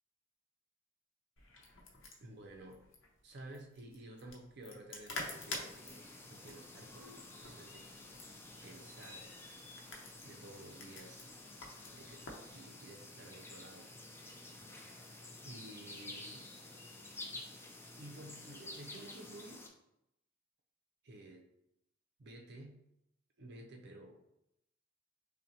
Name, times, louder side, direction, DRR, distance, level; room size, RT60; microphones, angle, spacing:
sound 1, 1.4-12.5, left 2 dB, 80° left, 0.7 m, -49 dB
voice 1, 2.2-2.8 3.2-7.8 8.6-9.3 9.8-11.3 11.9-12.2 12.5-13.9 15.4-16.5 18.0-19.6 21.0-21.4 22.2-22.8 23.4-24.2, right 1 dB, 60° right, 2 dB, 0.5 m, -53 dB
sound 2, 5.2-19.7, left 2 dB, 10° left, 0.4 m, -51 dB
5.4 x 2.1 x 2.8 m, 0.83 s
head